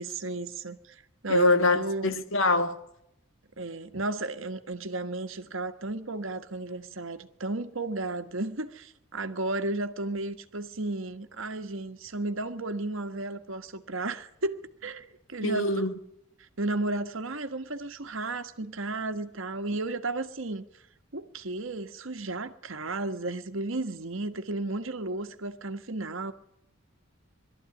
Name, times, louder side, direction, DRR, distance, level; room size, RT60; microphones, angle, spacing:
voice 1, 0.0-2.2 3.6-15.7 16.4-20.6 21.1-26.3, right 2 dB, 65° right, 1.4 m, -33 dB
voice 2, 1.3-2.8 15.4-15.9, left 3 dB, 70° left, 1.6 m, -24 dB
22.0 x 13.5 x 9.8 m
head